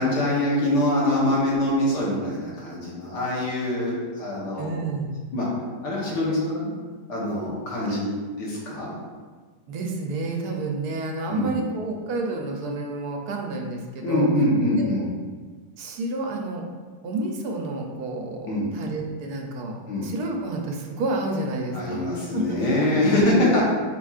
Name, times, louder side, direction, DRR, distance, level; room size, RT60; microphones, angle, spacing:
voice 1, 0.0-4.7 5.3-5.5 5.8-6.7 7.1-8.9 11.3-11.6 14.0-15.1 18.5-18.8 19.9-20.1 21.7-23.6, left 1 dB, 80° left, -5 dB, 1.7 m, -24 dB
voice 2, 4.6-5.1 7.9-8.0 9.7-14.3 14.8-14.9 15.8-16.6 17.0-19.7 20.0-22.6, right 2 dB, 75° right, 1 dB, 1.1 m, -30 dB
4.3 x 4.2 x 2.4 m, 1.5 s
omnidirectional pair, 1.8 m